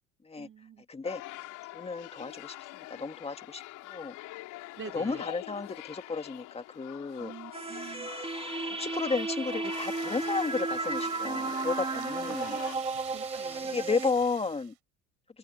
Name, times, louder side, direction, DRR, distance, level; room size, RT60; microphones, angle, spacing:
voice 1, 0.4-0.8 4.8-5.3 7.2-8.1 12.3-12.7 13.1-13.9, right 7 dB, 40° right, 2.6 m, -46 dB
voice 2, 0.9-1.2 1.7-2.6 2.9-4.1 4.9-7.3 8.8-12.6 13.7-14.7, left 4 dB, 20° left, 2.2 m, -33 dB
sound 1, 1.0-12.8, left 19 dB, 75° left, 5.4 m, -44 dB
sound 2, 7.5-14.1, right 3 dB, 20° right, 2.2 m, -34 dB
sound 3, 9.7-14.8, right 29 dB, 85° right, 6.5 m, -47 dB
open air
supercardioid pair, 95°, 31 cm